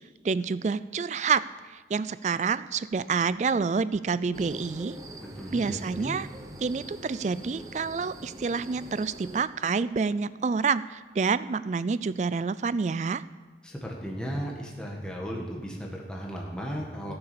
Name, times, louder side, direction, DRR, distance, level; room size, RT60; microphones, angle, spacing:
voice 1, 0.2-1.4 1.7-5.0 5.5-6.3 6.6-13.2, right 5 dB, 40° right, 17 dB, 0.3 m, -28 dB
sound 1, 4.3-9.4, right 1 dB, 20° right, 1.0 m, -44 dB
voice 2, 5.2-6.2 13.6-17.1, equal, 5° left, -2 dB, 1.5 m, -35 dB
16.5 x 6.9 x 6.9 m, 1.3 s
head